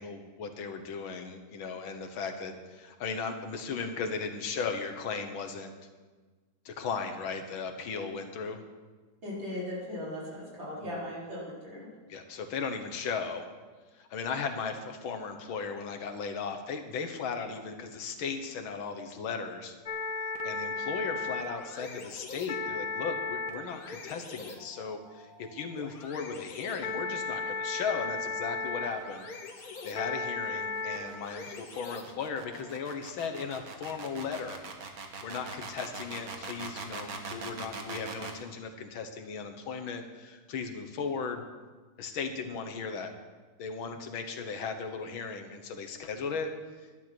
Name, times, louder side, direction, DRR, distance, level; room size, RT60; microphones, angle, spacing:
voice 1, 0.0-5.7 6.7-8.6 10.8-10.9 12.1-13.5 13.9-19.7 20.2-29.3 29.8-34.6 35.2-41.4 42.0-43.1 43.6-46.5, left 5 dB, 80° left, 7 dB, 2.0 m, -36 dB
voice 2, 9.2-11.9, left 1 dB, 75° right, -6 dB, 5.2 m, -38 dB
sound 1, 19.9-32.7, left 4 dB, 50° left, 1.7 m, -37 dB
sound 2, 29.1-38.4, right 4 dB, 50° right, 1.7 m, -42 dB
12.0 x 11.0 x 6.1 m, 1.4 s
omnidirectional pair, 2.2 m